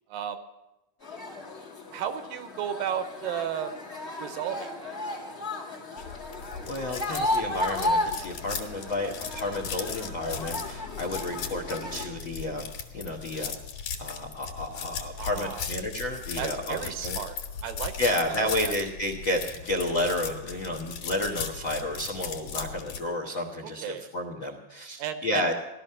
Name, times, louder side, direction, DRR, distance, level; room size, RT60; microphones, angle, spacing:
voice 1, 0.1-0.4 1.9-3.7 4.2-5.0 15.2-15.7 16.4-17.4 17.6-18.8 23.8-24.0 25.0-25.4, right 9 dB, 75° right, 9 dB, 2.3 m, -34 dB
sound 1, 1.0-12.1, left 1 dB, 40° left, 0.9 m, -34 dB
sound 2, 6.0-23.0, left 6 dB, 60° left, 3.0 m, -38 dB
voice 2, 6.7-13.6 14.0-17.2 18.0-25.5, left 1 dB, 80° left, 4 dB, 1.0 m, -31 dB
16.5 x 12.5 x 5.6 m, 0.97 s
omnidirectional pair, 4.3 m